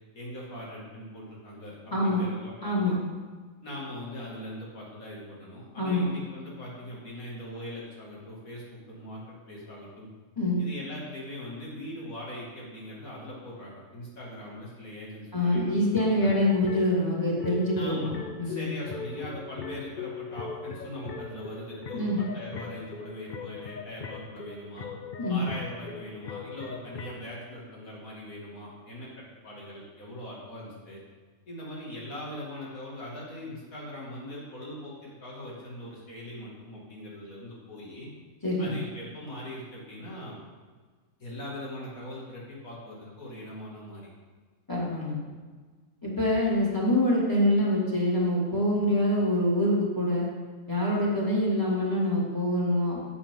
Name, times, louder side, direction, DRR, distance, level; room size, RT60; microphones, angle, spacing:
voice 1, 0.1-1.7 2.0-3.0 3.6-10.1 10.6-16.3 17.8-18.1 18.4-24.9 25.3-29.1 29.4-31.0 31.5-38.1 38.6-40.4 41.2-44.1, left 1 dB, 85° left, -5 dB, 2.9 m, -41 dB
voice 2, 1.9-2.3 2.6-3.0 5.8-6.1 10.4-10.6 15.3-18.0 18.4-18.7 21.9-22.2 25.2-25.4 38.4-38.7 44.7-45.2 46.0-50.3 50.7-53.0, left 1 dB, 15° left, -5 dB, 2.4 m, -25 dB
sound 1, 15.5-27.3, left 5 dB, 45° left, 0.6 m, -39 dB
8.7 x 8.2 x 3.8 m, 1.4 s
omnidirectional pair, 1.4 m